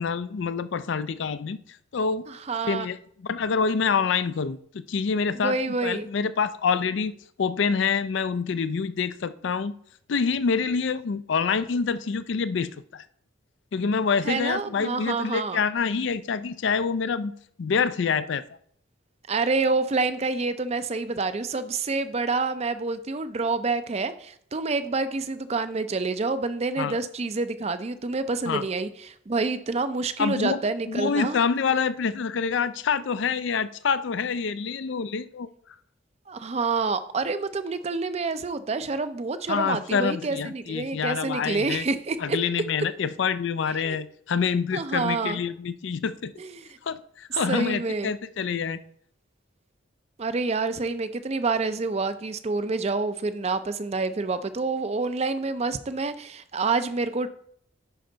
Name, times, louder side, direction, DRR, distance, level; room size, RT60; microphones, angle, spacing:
voice 1, 0.0-1.6 1.9-2.3 2.6-3.0 3.3-4.6 4.9-5.6 5.8-7.1 7.4-9.7 10.1-13.1 13.7-17.3 17.6-18.4 26.8-27.0 28.5-28.6 30.2-30.6 30.9-35.5 39.5-41.9 42.2-46.3 46.8-48.8, left 5 dB, 65° left, 0.4 m, -26 dB
voice 2, 2.3-2.9 5.3-6.1 14.2-15.6 19.3-31.4 36.3-42.4 43.8-44.0 44.7-45.4 46.4-46.7 47.5-48.1 50.2-57.3, right 3 dB, 35° right, 0.4 m, -28 dB
10.5 x 4.5 x 3.9 m
head